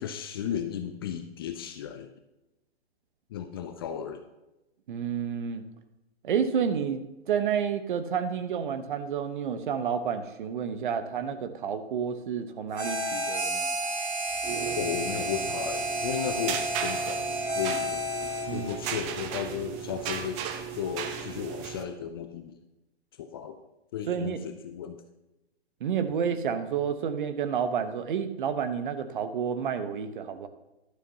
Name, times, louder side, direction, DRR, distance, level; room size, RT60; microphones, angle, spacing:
voice 1, 0.0-2.1 3.3-4.2 14.8-18.0 18.5-20.4 20.7-22.6 23.2-23.6 23.9-25.0 26.1-26.2, left 9 dB, 25° left, 8 dB, 0.4 m, -35 dB
voice 2, 4.9-5.6 6.2-13.8 18.5-18.7 24.1-24.4 25.8-30.5, right 7 dB, 50° right, 10 dB, 1.1 m, -30 dB
Harmonica, 12.7-18.7, right 1 dB, 85° right, 2.1 m, -31 dB
sound 1, 14.3-21.8, right 8 dB, 20° right, 0.7 m, -36 dB
14.0 x 12.0 x 2.8 m, 0.97 s
figure-of-eight pair, 130°, 32 cm